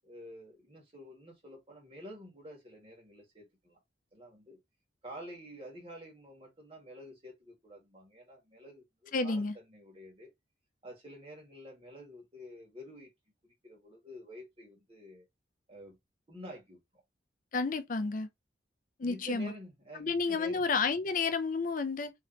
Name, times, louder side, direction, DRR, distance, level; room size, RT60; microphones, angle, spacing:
voice 1, 0.0-3.8 4.1-4.6 5.0-10.3 10.8-13.1 13.6-15.3 15.7-16.0 16.3-16.8 19.0-20.6, equal, 30° right, 1.8 m, -49 dB
voice 2, 9.1-9.5 17.5-18.3 19.0-19.5 20.0-22.1, left 4 dB, 45° left, 0.5 m, -31 dB
3.2 x 2.9 x 3.8 m
head